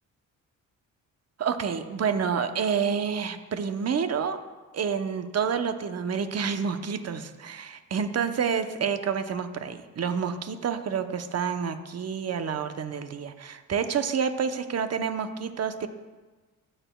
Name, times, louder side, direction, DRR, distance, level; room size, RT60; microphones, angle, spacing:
voice 1, 1.4-4.4 4.7-15.9, right 6 dB, 45° right, 9 dB, 0.8 m, -28 dB
15.0 x 6.7 x 2.3 m, 1.3 s
supercardioid pair, 60°, 37 cm